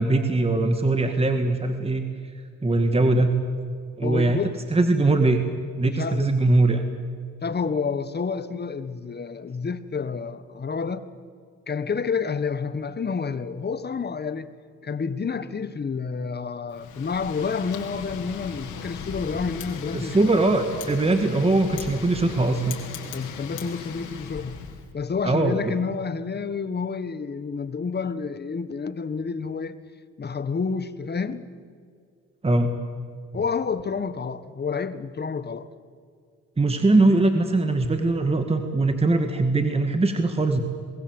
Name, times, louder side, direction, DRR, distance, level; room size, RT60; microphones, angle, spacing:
voice 1, 0.0-2.0 2.6-3.3 4.0-4.4 4.7-5.4 5.8-6.8 19.9-22.8 25.2-25.6 32.4-32.8 36.6-40.6, right 2 dB, 20° right, 2.0 m, -21 dB
voice 2, 4.0-4.6 5.8-6.3 7.4-11.1 11.7-14.5 14.8-20.5 23.1-24.7 24.9-29.8 30.2-31.5 33.3-35.7, left 5 dB, 35° left, 1.5 m, -29 dB
Wind, 16.7-24.9, left 6 dB, 85° left, 3.6 m, -38 dB
28.0 x 21.5 x 8.1 m
cardioid pair, 90°, 30 cm